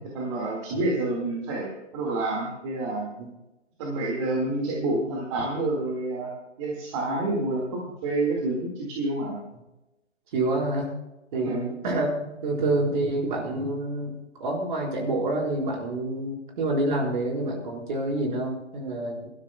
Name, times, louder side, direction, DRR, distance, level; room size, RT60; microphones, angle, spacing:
voice 1, 0.1-3.1 3.8-6.3 6.6-9.4 11.4-11.6, right 2 dB, 25° right, -3 dB, 1.9 m, -28 dB
voice 2, 10.3-10.9 11.3-14.1 14.4-19.3, right 2 dB, 40° right, -1 dB, 4.4 m, -27 dB
22.0 x 13.0 x 2.2 m, 0.96 s
hypercardioid pair, 160°, 37 cm